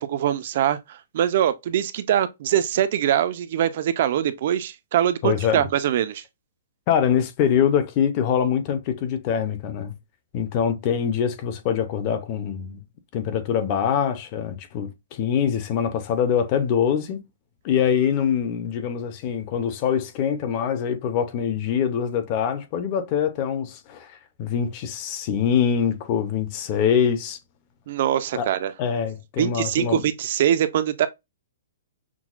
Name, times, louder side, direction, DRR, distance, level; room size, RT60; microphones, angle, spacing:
voice 1, 0.0-6.2 27.9-28.7 29.4-31.1, right 10 dB, 40° right, 0.3 m, -23 dB
voice 2, 5.2-5.6 6.9-9.9 10.3-12.8 13.1-17.2 17.6-27.4 28.3-28.5 28.8-30.1, left 8 dB, 25° left, 0.5 m, -24 dB
5.9 x 2.1 x 2.4 m
hypercardioid pair, 175°, 0 cm